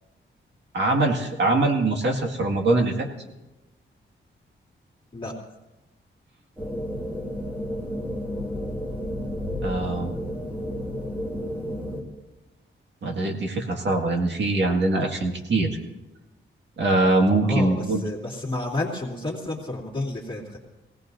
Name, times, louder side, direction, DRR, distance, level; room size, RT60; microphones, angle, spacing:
voice 1, 0.7-3.1 9.6-10.2 13.0-15.8 16.8-18.0, right 2 dB, 60° right, 2 dB, 2.0 m, -23 dB
sound 1, 6.6-12.0, equal, 10° right, 1.6 m, -31 dB
voice 2, 17.4-20.6, left 2 dB, 25° left, -3 dB, 2.4 m, -30 dB
22.5 x 17.0 x 2.7 m, 1.0 s
wide cardioid pair, 175°, 21 cm